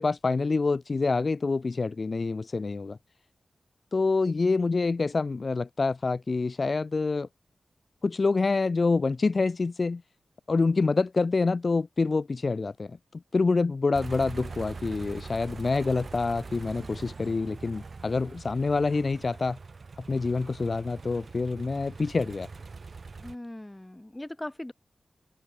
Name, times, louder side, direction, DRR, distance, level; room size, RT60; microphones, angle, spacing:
voice 1, 0.0-3.0 3.9-7.3 8.0-10.0 10.5-13.0 13.3-19.6 20.1-22.5, left 3 dB, 55° left, 0.6 m, -26 dB
sound 1, 13.9-23.3, right 4 dB, 60° right, 3.8 m, -42 dB
voice 2, 23.2-24.7, left 1 dB, 15° left, 2.3 m, -39 dB
cardioid pair, 45°, 0 cm